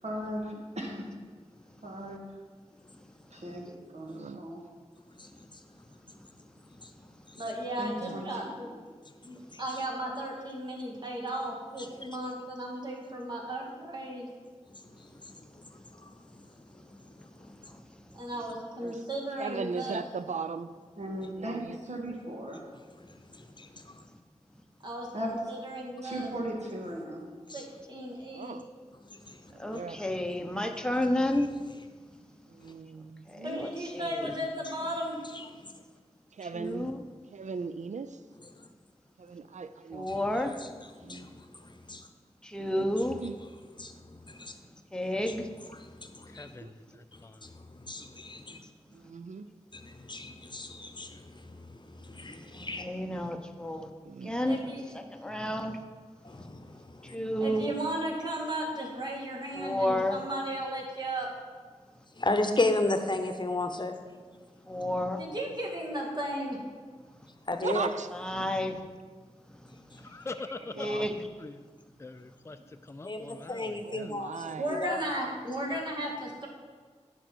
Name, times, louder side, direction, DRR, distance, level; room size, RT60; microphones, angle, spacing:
voice 1, 0.0-1.1 1.8-2.2 3.3-4.6 7.8-8.8 21.0-22.7 25.1-25.3 26.0-27.3 29.8-30.0 41.0-41.3, equal, 65° right, -1 dB, 1.9 m, -38 dB
voice 2, 4.1-4.4 8.0-8.2 18.8-19.0 19.4-20.7 21.4-21.8 28.3-28.7 29.5-30.0 32.6-33.7 36.4-36.9 37.3-38.2 39.2-40.1 42.6-43.4 46.6-46.7 49.1-49.5 54.0-54.3 67.6-68.1 70.8-71.1 73.8-74.8, right 5 dB, 85° right, 12 dB, 0.4 m, -38 dB
voice 3, 7.3-8.7 9.2-14.3 18.1-20.0 24.8-26.3 27.5-28.6 33.4-35.2 54.5-54.8 57.4-61.3 65.2-66.6 74.6-76.5, right 1 dB, 40° right, -3 dB, 2.4 m, -35 dB
voice 4, 11.8-12.1 14.7-15.7 15.9-16.1 16.8-17.3 17.7-17.8 18.5-18.6 23.0-24.0 27.5-27.7 29.0-29.4 29.7-29.8 31.4-31.5 35.2-35.7 38.5-38.7 40.1-40.2 40.6-42.1 43.8-44.5 45.3-45.4 45.7-46.6 47.1-48.6 49.8-52.9 56.2-57.2 62.2-63.9 67.5-67.9 73.0-75.0, left 2 dB, 40° left, 7 dB, 0.9 m, -35 dB
voice 5, 29.6-31.5 33.3-33.7 33.9-34.3 36.5-37.0 39.9-40.5 42.4-43.2 44.9-45.5 52.6-53.9 54.2-54.6 55.1-55.8 57.1-57.7 59.5-60.2 64.7-65.2 68.1-68.8 70.8-71.1, left 1 dB, 5° left, 4 dB, 0.9 m, -30 dB
voice 6, 46.3-47.5 69.7-71.0 71.4-71.6 72.0-74.1, left 3 dB, 20° left, 9 dB, 0.4 m, -44 dB
10.0 x 6.2 x 4.4 m, 1.5 s
cardioid pair, 45°, 12 cm